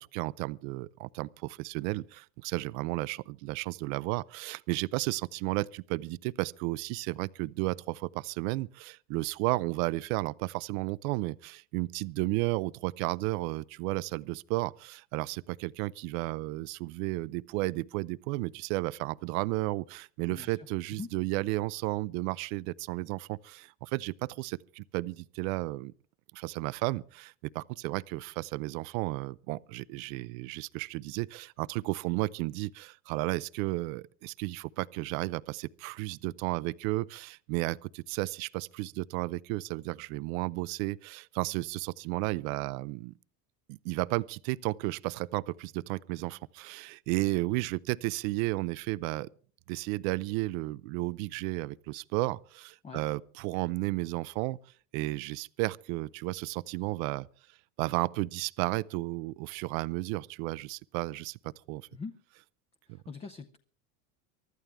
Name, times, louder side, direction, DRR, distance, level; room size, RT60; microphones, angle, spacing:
voice 1, 0.0-25.9 26.3-43.1 43.7-49.3 49.7-54.6 54.9-57.3 57.8-61.9, right 21 dB, 80° right, 0.7 m, -33 dB
voice 2, 20.3-20.7 20.9-21.1 52.8-53.0 61.9-62.2 62.9-63.6, left 4 dB, 15° left, 0.6 m, -42 dB
24.0 x 13.0 x 3.5 m
cardioid pair, 155°, 41 cm